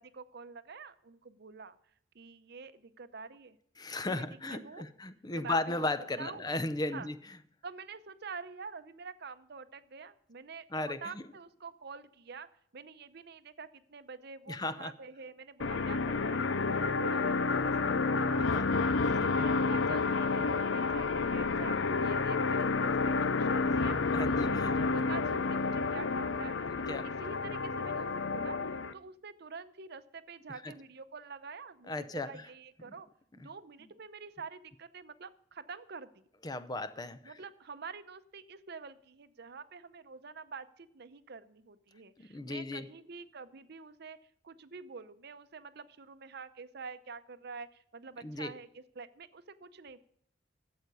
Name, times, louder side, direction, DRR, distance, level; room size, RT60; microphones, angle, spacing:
voice 1, 0.0-1.8 2.1-3.6 4.0-4.8 5.3-5.9 6.2-6.5 6.9-7.1 7.6-12.5 12.7-16.5 16.8-18.9 19.3-24.1 24.5-33.1 33.4-36.2 37.2-44.2 44.4-50.0, right 5 dB, 60° right, 12 dB, 0.7 m, -47 dB
voice 2, 3.8-7.2 10.7-11.2 14.5-14.9 18.5-18.6 19.1-19.3 23.6-23.7 24.1-24.8 26.9-27.1 30.6-30.7 31.9-32.4 32.8-32.9 33.4-33.5 36.4-37.3 42.2-42.9 48.2-48.5, left 2 dB, 20° left, 12 dB, 0.6 m, -36 dB
sound 1, 15.6-28.9, left 4 dB, 80° left, 0.6 m, -30 dB
13.0 x 7.9 x 5.4 m, 0.68 s
head